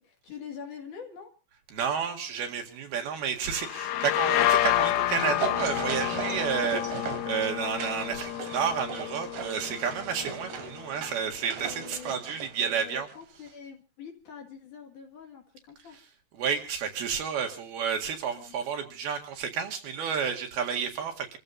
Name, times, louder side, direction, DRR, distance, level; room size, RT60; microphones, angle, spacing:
voice 1, 0.0-1.3 11.6-12.2 12.6-16.0 18.4-18.6, left 7 dB, 55° left, 3 dB, 3.2 m, -45 dB
voice 2, 1.7-13.1 16.3-21.4, right 7 dB, 65° right, 3 dB, 3.7 m, -31 dB
sound 1, 3.5-11.0, left 13 dB, 70° left, 2.6 m, -29 dB
sound 2, 4.6-13.2 13.5-13.6, right 7 dB, 85° right, 4.4 m, -38 dB
28.5 x 15.0 x 2.7 m, 0.34 s
omnidirectional pair, 4.9 m